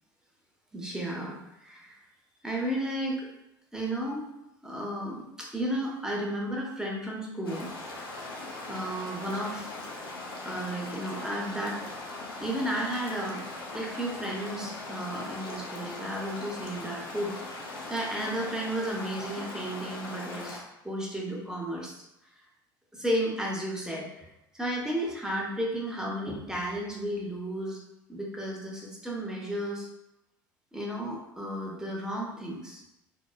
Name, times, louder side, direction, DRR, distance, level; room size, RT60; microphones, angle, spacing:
voice 1, 0.7-2.0 2.4-3.3 3.7-4.3 4.6-7.7 8.7-9.8 10.4-11.8 12.4-13.4 13.7-17.3 17.9-22.0 22.9-27.8 28.1-29.9 30.7-32.8, right 1 dB, 5° right, -2 dB, 0.7 m, -33 dB
sound 1, 7.4-20.6, left 2 dB, 85° left, 0.5 m, -40 dB
3.0 x 2.0 x 2.2 m, 0.88 s
figure-of-eight pair, 65°, 12 cm